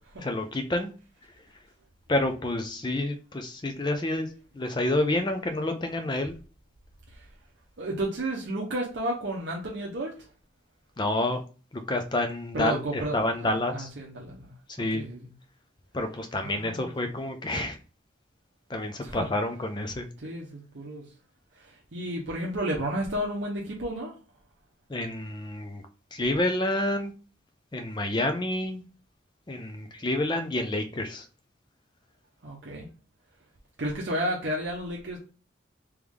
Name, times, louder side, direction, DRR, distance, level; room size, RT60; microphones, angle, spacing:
voice 1, 0.2-0.9 2.1-4.3 4.5-6.3 11.0-11.4 11.9-13.9 14.8-15.0 15.9-17.8 18.7-20.1 24.9-25.8 26.1-27.1 27.7-28.8 29.5-31.3, left 1 dB, 20° left, 7 dB, 0.4 m, -28 dB
voice 2, 7.8-10.1 12.5-14.5 14.9-15.3 16.3-16.9 19.0-19.2 20.2-21.0 21.6-24.1 32.4-32.9 33.8-35.2, right 1 dB, 60° right, -3 dB, 0.7 m, -32 dB
3.4 x 3.0 x 3.5 m, 0.37 s
head